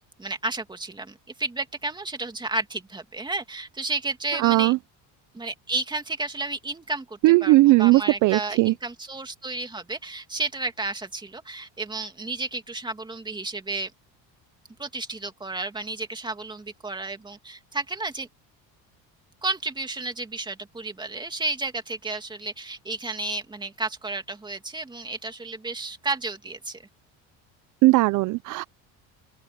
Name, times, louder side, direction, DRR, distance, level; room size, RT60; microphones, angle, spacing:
voice 1, 0.2-4.7 5.3-13.9 14.8-18.3 19.4-26.8, right 3 dB, 10° right, 2.6 m, -32 dB
voice 2, 4.4-4.8 7.2-8.7 27.8-28.6, right 20 dB, 55° right, 0.5 m, -18 dB
open air
cardioid pair, 140°, 38 cm